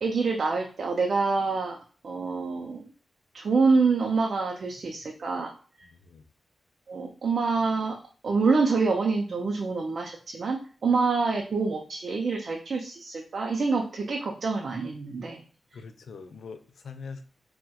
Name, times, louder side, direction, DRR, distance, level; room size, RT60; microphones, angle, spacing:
voice 1, 0.0-1.8 2.0-2.8 3.3-5.5 6.9-8.0 8.2-15.4, right 4 dB, 65° right, 1 dB, 0.4 m, -26 dB
voice 2, 5.8-6.3 15.7-17.2, left 5 dB, 75° left, 9 dB, 0.3 m, -43 dB
4.1 x 2.1 x 2.2 m, 0.40 s
cardioid pair, 60°, 0 cm